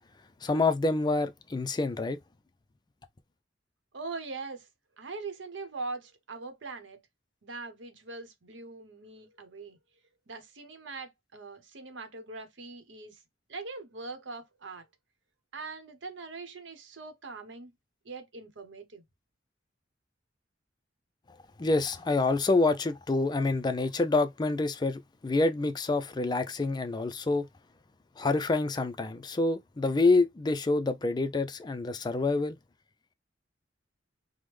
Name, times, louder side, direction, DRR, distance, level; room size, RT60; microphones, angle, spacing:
voice 1, 0.4-2.2 21.6-27.5 28.2-32.6, left 3 dB, 25° left, 0.4 m, -27 dB
voice 2, 3.9-4.7 5.0-7.0 7.4-9.8 10.3-13.2 13.5-14.9 15.5-17.7 18.0-19.0, right 3 dB, 80° right, 0.8 m, -42 dB
3.4 x 2.1 x 3.1 m
head